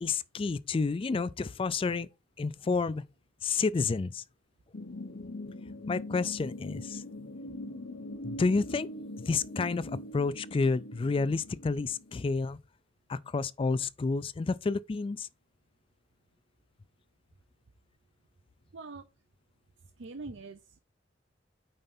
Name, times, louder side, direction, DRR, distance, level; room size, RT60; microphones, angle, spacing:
voice 1, 0.0-2.1 2.4-3.0 3.4-4.2 5.9-7.0 8.2-8.9 9.3-12.6 13.1-15.3, left 4 dB, 30° left, 0.3 m, -30 dB
sound 1, 4.7-12.3, left 1 dB, 70° left, 1.0 m, -42 dB
voice 2, 18.7-19.1 20.0-20.8, right 3 dB, 75° right, 0.6 m, -43 dB
8.9 x 5.5 x 2.7 m
head